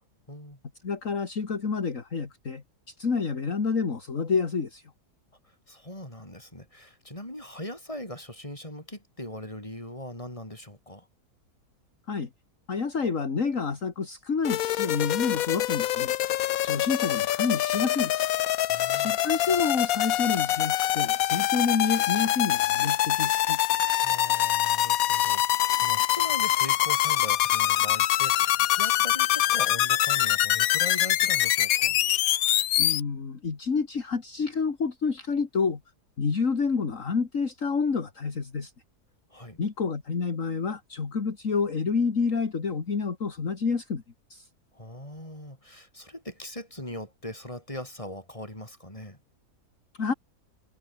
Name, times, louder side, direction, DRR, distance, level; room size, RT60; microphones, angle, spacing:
voice 1, 0.3-0.6 5.4-11.1 18.7-19.1 24.0-32.0 39.3-39.6 44.7-49.2, left 1 dB, 20° left, 7.9 m, -40 dB
voice 2, 0.8-4.8 12.1-12.3 12.7-16.1 16.6-18.3 19.0-23.6 32.8-35.8 36.2-38.7 39.6-44.0 44.3-44.5 50.0-50.1, left 5 dB, 50° left, 2.5 m, -28 dB
sound 1, 14.4-33.0, left 13 dB, 70° left, 1.0 m, -24 dB
omnidirectional pair, 1.7 m